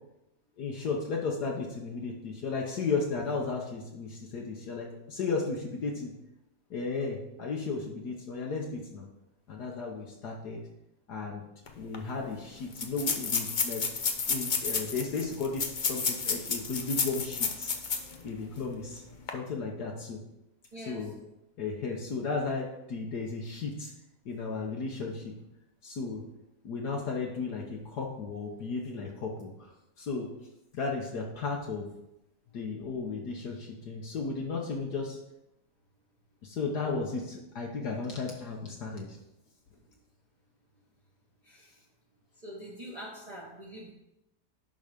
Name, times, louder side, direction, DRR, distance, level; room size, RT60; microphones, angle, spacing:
voice 1, 0.6-6.1 6.7-9.1 9.5-10.6 11.1-11.4 11.8-13.8 14.3-17.7 18.2-19.0 19.3-20.2 20.8-21.3 21.6-23.9 24.2-25.3 25.8-26.2 26.6-29.7 30.0-30.3 30.7-31.9 32.5-35.2 36.4-39.2, left 4 dB, 70° left, -1 dB, 1.6 m, -34 dB
sound 1, 11.7-11.8 11.9-12.0 12.7-18.2 18.6-18.7 19.1-19.3, left 5 dB, 45° left, 0.6 m, -31 dB
voice 2, 20.7-21.1 41.4-41.7 42.4-43.9, equal, 25° right, -6 dB, 1.4 m, -44 dB
11.0 x 4.0 x 5.1 m, 0.89 s
omnidirectional pair, 1.8 m